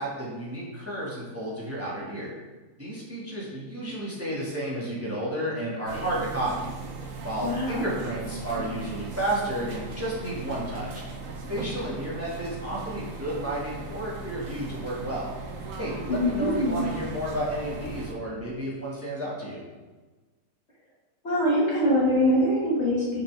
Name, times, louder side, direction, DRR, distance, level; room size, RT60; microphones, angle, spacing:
voice 1, 0.0-2.3 2.8-6.8 7.2-11.0 11.5-15.3 15.8-19.6, right 1 dB, 10° right, -6 dB, 2.0 m, -32 dB
sound 1, 5.8-18.1, right 3 dB, 55° right, 1.4 m, -38 dB
voice 2, 7.4-7.8 16.1-16.9 21.2-23.2, equal, 40° left, -6 dB, 2.2 m, -23 dB
9.8 x 6.5 x 3.5 m, 1.3 s
omnidirectional pair, 1.8 m